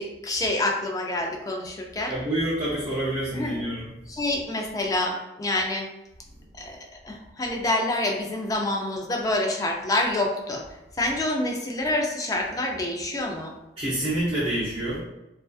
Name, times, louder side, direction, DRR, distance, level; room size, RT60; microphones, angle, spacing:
voice 1, 0.0-2.1 3.3-3.7 4.1-5.9 6.6-6.8 7.0-10.6 11.0-13.5, left 1 dB, 20° left, 1 dB, 0.3 m, -27 dB
voice 2, 2.1-3.9 13.8-15.0, right 1 dB, 35° right, -8 dB, 0.5 m, -27 dB
2.4 x 2.3 x 2.3 m, 0.93 s
head